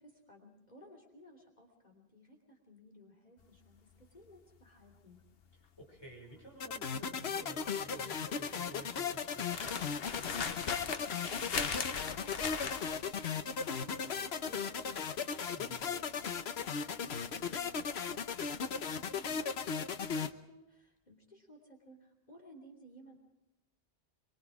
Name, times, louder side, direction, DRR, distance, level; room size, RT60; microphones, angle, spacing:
voice 1, 0.0-5.2 10.9-23.2, equal, 40° left, 2 dB, 3.2 m, -58 dB
sound 1, 3.4-19.6 19.9-20.2, left 6 dB, 70° left, 1.2 m, -41 dB
voice 2, 5.8-10.1 15.5-15.9, right 1 dB, 25° left, -1 dB, 5.7 m, -53 dB
sound 2, 6.6-20.3, left 6 dB, 85° left, 1.2 m, -37 dB
24.0 x 24.0 x 4.8 m, 0.90 s
omnidirectional pair, 1.1 m